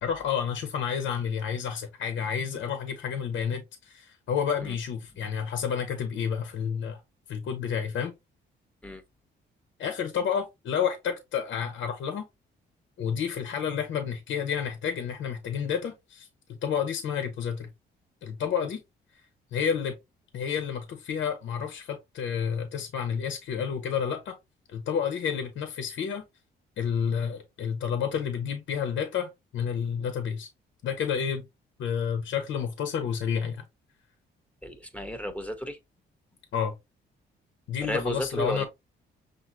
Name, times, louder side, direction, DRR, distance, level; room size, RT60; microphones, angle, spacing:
voice 1, 0.0-7.0 7.3-8.1 9.8-12.2 13.0-17.7 18.2-18.8 19.5-20.0 20.3-24.4 24.7-26.2 26.8-30.5 30.8-31.5 31.8-33.6 36.5-36.7 37.7-38.6, left 7 dB, 75° left, 1.0 m, -30 dB
voice 2, 34.6-35.8 37.8-38.6, equal, 5° left, 1.0 m, -32 dB
6.1 x 2.8 x 2.7 m
cardioid pair, 90°, 20 cm